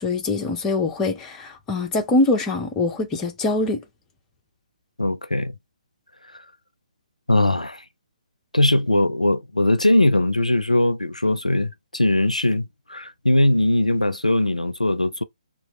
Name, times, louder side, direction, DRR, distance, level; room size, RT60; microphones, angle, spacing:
voice 1, 0.0-3.8, left 2 dB, 15° left, 0.7 m, -23 dB
voice 2, 5.0-5.5 7.3-7.8 8.5-15.2, left 1 dB, 85° left, 0.4 m, -20 dB
2.9 x 2.4 x 2.9 m
figure-of-eight pair, 135°, 4 cm